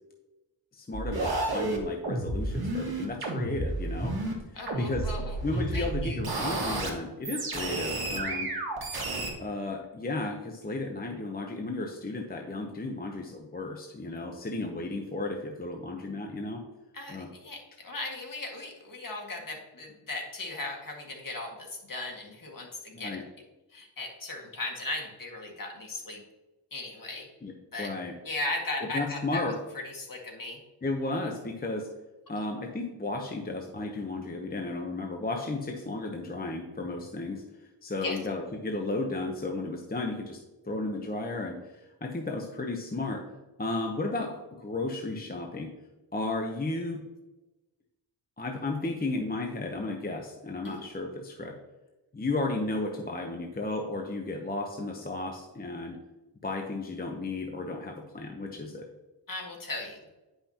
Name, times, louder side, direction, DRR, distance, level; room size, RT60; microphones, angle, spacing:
voice 1, 0.7-4.2 4.8-5.1 5.4-8.5 9.4-16.6 17.1-17.3 22.9-23.2 27.4-27.5 27.8-28.1 28.9-29.6 30.8-31.9 32.3-37.4 37.8-40.4 40.6-43.3 43.6-45.7 46.1-47.0 48.4-51.5 52.1-56.0 56.4-58.8, left 2 dB, 20° left, 2 dB, 0.8 m, -34 dB
sound 1, 0.9-4.3 4.7-6.9 7.2-9.3, right 2 dB, 55° right, 1.8 m, -31 dB
voice 2, 4.5-6.5 16.9-23.2 23.7-26.2 26.7-27.3 27.7-27.9 28.2-29.4 29.7-30.6 38.0-38.2 50.6-50.9 59.3-60.0, left 2 dB, 45° left, 0 dB, 2.0 m, -37 dB
9.8 x 5.7 x 2.9 m, 1.1 s
wide cardioid pair, 90°, 45 cm